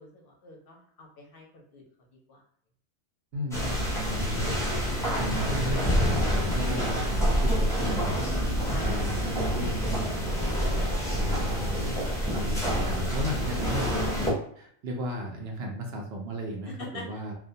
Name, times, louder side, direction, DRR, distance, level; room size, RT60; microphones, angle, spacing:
voice 1, 0.0-1.8 2.3-2.4 8.7-9.2 16.7-17.0, left 3 dB, 60° left, -1 dB, 0.7 m, -45 dB
voice 2, 3.3-8.2 8.5-10.4 11.1-11.8 12.3-17.3, equal, 65° right, 1 dB, 0.7 m, -35 dB
sound 1, 3.5-14.3, equal, 5° left, 0.4 m, -27 dB
2.3 x 2.1 x 2.6 m, 0.63 s
omnidirectional pair, 1.2 m